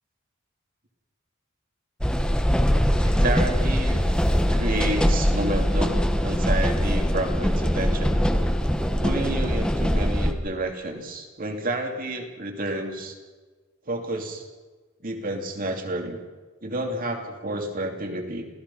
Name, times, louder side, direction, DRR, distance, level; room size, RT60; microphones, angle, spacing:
sound 1, 2.0-10.3, equal, 5° left, 1.4 m, -22 dB
voice 1, 3.0-4.0 4.5-8.2 9.0-13.1 13.9-14.4 15.0-16.2 16.6-18.4, right 1 dB, 45° right, 3 dB, 2.9 m, -30 dB
27.5 x 17.0 x 5.7 m, 1.3 s
head